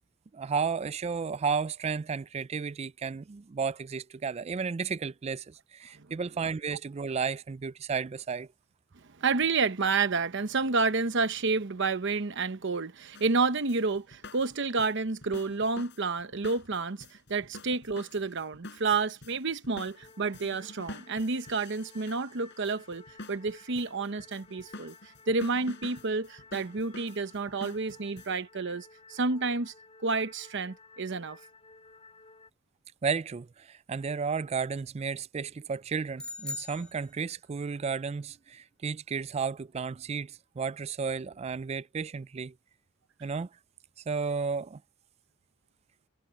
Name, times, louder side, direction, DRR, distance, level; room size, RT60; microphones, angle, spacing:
voice 1, 0.3-8.5 33.0-42.5 43.2-43.5 44.1-44.8, right 5 dB, 30° right, 0.3 m, -33 dB
voice 2, 9.2-24.9 25.3-29.7 30.0-31.4, right 4 dB, 60° right, 0.9 m, -30 dB
sound 1, 13.1-28.4, left 2 dB, 60° left, 5.1 m, -48 dB
sound 2, 19.9-32.5, left 3 dB, 30° left, 3.2 m, -55 dB
sound 3, 36.2-37.6, left 3 dB, 5° left, 1.3 m, -41 dB
head